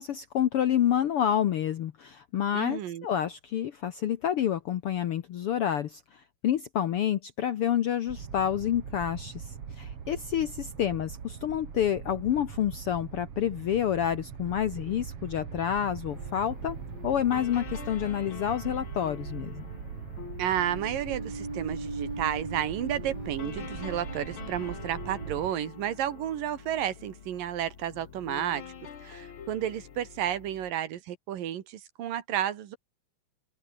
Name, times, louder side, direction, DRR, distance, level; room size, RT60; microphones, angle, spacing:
voice 1, 0.0-16.8 17.0-19.7, left 10 dB, 80° left, 1.3 m, -28 dB
voice 2, 2.5-3.1 20.4-28.7 29.0-32.8, right 11 dB, 80° right, 3.4 m, -32 dB
sound 1, 8.1-25.5, right 7 dB, 45° right, 3.0 m, -41 dB
sound 2, 16.1-30.7, left 7 dB, 45° left, 2.2 m, -46 dB
sound 3, 20.5-26.9, right 2 dB, 30° right, 7.0 m, -41 dB
open air
omnidirectional pair, 3.9 m